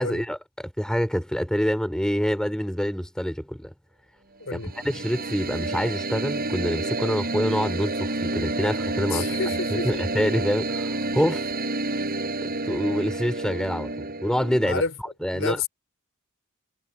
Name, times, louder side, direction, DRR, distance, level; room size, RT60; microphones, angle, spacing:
voice 1, 0.0-3.7 4.5-4.6 4.8-9.4 9.7-11.5 12.4-14.8 15.2-15.7, equal, 5° left, 3.8 m, -26 dB
voice 2, 4.4-4.7 9.1-10.0 14.6-14.9 15.3-15.7, left 4 dB, 65° left, 3.7 m, -29 dB
sound 1, 4.5-14.7, right 2 dB, 45° right, 6.8 m, -29 dB
head